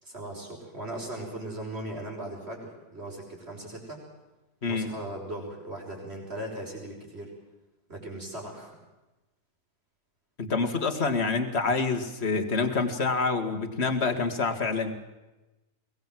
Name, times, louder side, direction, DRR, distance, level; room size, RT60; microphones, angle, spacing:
voice 1, 0.0-4.0 4.7-7.3 7.9-8.8, right 1 dB, 40° right, 0 dB, 5.9 m, -38 dB
voice 2, 4.6-4.9 10.4-14.9, left 4 dB, 40° left, 6 dB, 2.3 m, -27 dB
22.0 x 20.0 x 7.7 m, 1.1 s
omnidirectional pair, 1.7 m